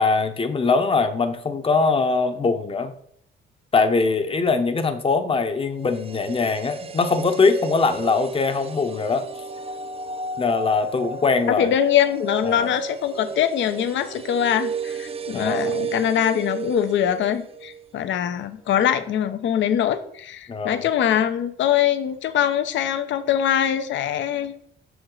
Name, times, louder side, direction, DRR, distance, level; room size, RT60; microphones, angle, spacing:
voice 1, 0.0-2.9 3.7-9.3 10.4-11.7 12.4-12.7 15.3-15.7 20.5-20.9, left 4 dB, 30° left, 8 dB, 0.8 m, -22 dB
sound 1, 5.7-17.8 18.1-18.2, right 4 dB, 30° right, 0.4 m, -33 dB
voice 2, 11.5-24.5, left 10 dB, 70° left, 10 dB, 0.7 m, -23 dB
6.3 x 4.6 x 3.8 m, 0.65 s
cardioid pair, 90°, 20 cm